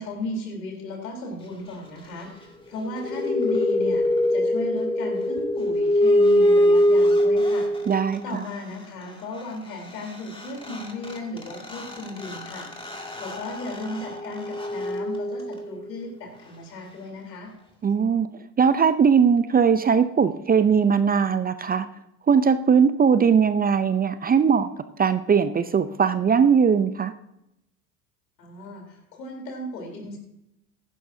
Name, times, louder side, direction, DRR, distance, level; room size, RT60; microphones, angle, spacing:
voice 1, 0.0-4.0 4.3-7.7 8.2-12.7 13.2-17.5 28.4-30.2, left 2 dB, 85° left, 2 dB, 3.8 m, -35 dB
sound 1, 2.8-8.2 10.1-10.2 10.3-15.8, left 1 dB, 10° left, 2.3 m, -23 dB
voice 2, 7.9-8.5 17.8-18.3 18.6-21.9 22.3-24.7 25.0-27.1, right 6 dB, 20° right, 12 dB, 0.5 m, -20 dB
15.0 x 11.0 x 2.7 m, 0.81 s
hypercardioid pair, 80°, 48 cm